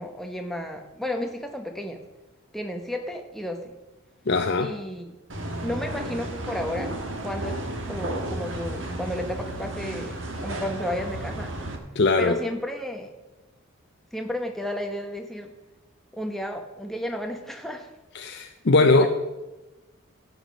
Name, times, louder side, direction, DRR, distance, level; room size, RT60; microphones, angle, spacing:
voice 1, 0.0-2.0 2.5-3.6 4.6-5.1 5.6-6.9 7.2-7.6 7.9-11.5 12.2-13.1 14.1-15.5 16.2-17.9 18.8-19.1, left 1 dB, ahead, 3 dB, 1.0 m, -32 dB
voice 2, 4.3-4.7 12.0-12.4 18.1-19.1, left 3 dB, 50° left, 6 dB, 0.6 m, -20 dB
sound 1, 5.3-11.8, right 1 dB, 55° right, 1.5 m, -33 dB
12.0 x 8.3 x 5.3 m, 1.1 s
head